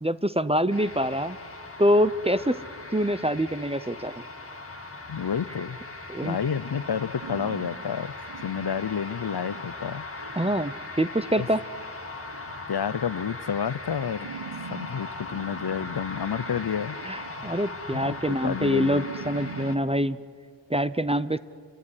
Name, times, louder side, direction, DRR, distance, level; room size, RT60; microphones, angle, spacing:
voice 1, 0.0-1.4 1.8-2.6 2.9-4.1 6.1-6.4 10.4-11.6 17.0-20.2 20.7-21.4, equal, 15° right, 14 dB, 0.7 m, -25 dB
sound 1, 0.7-19.8, left 2 dB, 30° left, 2.3 m, -39 dB
voice 2, 5.1-5.8 6.2-8.1 8.4-10.0 11.4-11.5 12.7-14.3 14.7-17.0 17.9-19.0, left 7 dB, 60° left, 17 dB, 0.8 m, -30 dB
sound 2, 7.2-7.7 8.2-8.7 9.2-9.7 10.2-10.6 11.2-11.6 12.2-12.6 13.2-13.6 14.2-14.9 15.2-17.5 17.9-18.6 18.9-20.1, right 6 dB, 80° right, 1.6 m, -43 dB
29.5 x 16.0 x 9.8 m, 2.3 s
wide cardioid pair, 90°, 44 cm